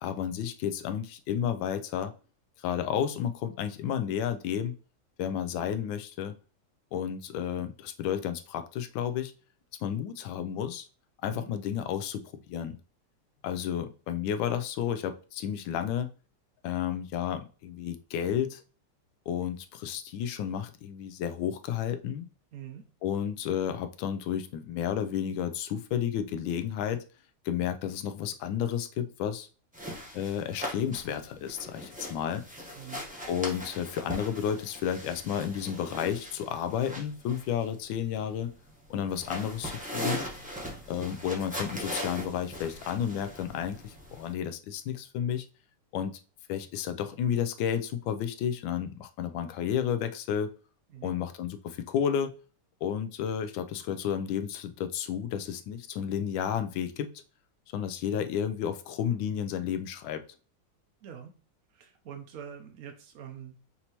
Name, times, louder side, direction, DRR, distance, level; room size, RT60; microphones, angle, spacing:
voice 1, 0.0-2.1 2.6-4.7 5.2-6.3 6.9-9.3 9.8-10.9 11.2-12.8 13.4-16.1 16.6-18.6 19.3-22.3 23.0-27.0 27.4-29.5 30.1-32.4 33.3-38.5 38.9-40.2 40.9-45.5 45.9-46.2 46.5-50.5 51.0-52.3 52.8-57.1 57.7-60.2, left 9 dB, 90° left, 9 dB, 1.3 m, -32 dB
voice 2, 22.5-22.8 32.7-33.0 50.9-51.1 61.0-61.3 61.7-63.6, right 9 dB, 65° right, 3 dB, 0.8 m, -44 dB
sound 1, 29.7-44.3, equal, 5° right, 0.7 m, -40 dB
5.5 x 2.8 x 2.9 m, 0.37 s
omnidirectional pair, 2.0 m